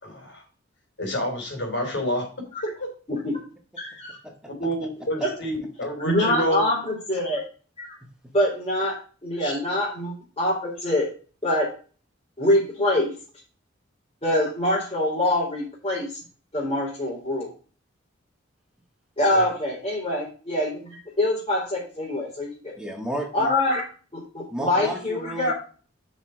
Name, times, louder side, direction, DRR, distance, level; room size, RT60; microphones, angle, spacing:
voice 1, 0.0-0.4 1.0-2.2 2.8-2.9 4.6-6.7 9.4-9.6 19.2-19.5, equal, 65° left, 2 dB, 4.3 m, -28 dB
voice 2, 3.1-3.4 3.8-4.2 6.0-7.4 7.8-7.9 8.3-9.0 9.2-11.1 11.4-11.7 12.4-13.1 14.2-16.1 16.5-17.5 19.2-20.8 21.2-22.7 23.3-23.8 24.1-25.5, left 1 dB, 30° left, -6 dB, 3.9 m, -24 dB
voice 3, 22.8-23.5 24.5-25.5, right 1 dB, 5° right, 2 dB, 1.5 m, -32 dB
7.3 x 6.1 x 4.9 m, 0.38 s
head